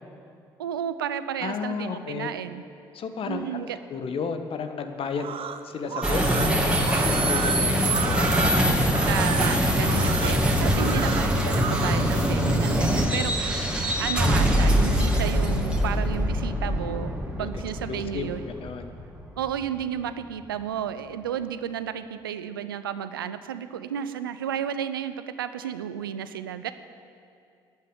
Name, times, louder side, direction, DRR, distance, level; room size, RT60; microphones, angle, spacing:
voice 1, 0.6-2.6 3.3-3.8 9.1-13.7 14.0-17.1 17.4-18.4 19.4-26.7, right 9 dB, 90° right, 12 dB, 0.5 m, -32 dB
voice 2, 1.4-2.3 2.9-3.5 3.9-5.3 5.6-8.8 17.4-17.5 17.9-18.9, left 5 dB, 55° left, 7 dB, 1.3 m, -33 dB
sound 1, 5.1-12.0, right 7 dB, 55° right, 0.9 m, -33 dB
sound 2, 6.0-19.4, equal, 10° right, 2.5 m, -23 dB
11.5 x 9.6 x 9.0 m, 2.4 s
hypercardioid pair, 50°, 11 cm